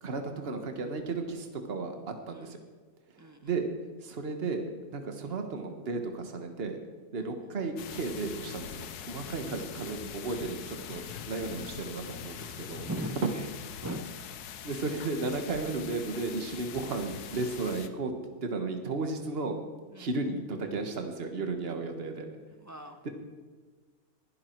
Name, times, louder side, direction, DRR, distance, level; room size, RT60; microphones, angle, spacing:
voice 1, 0.0-2.6 3.4-3.7 4.0-6.8 7.1-12.9 14.6-18.1 18.4-19.6 20.0-22.3, right 3 dB, 40° right, 5 dB, 1.6 m, -34 dB
voice 2, 2.3-2.7 3.2-3.6 7.1-7.3 9.2-9.4 12.8-13.5 13.8-14.2 19.9-20.1 22.5-23.1, equal, 15° right, 6 dB, 0.8 m, -40 dB
sound 1, 7.8-17.9, left 9 dB, 85° left, 1.4 m, -43 dB
20.5 x 11.5 x 4.6 m, 1.4 s
omnidirectional pair, 1.6 m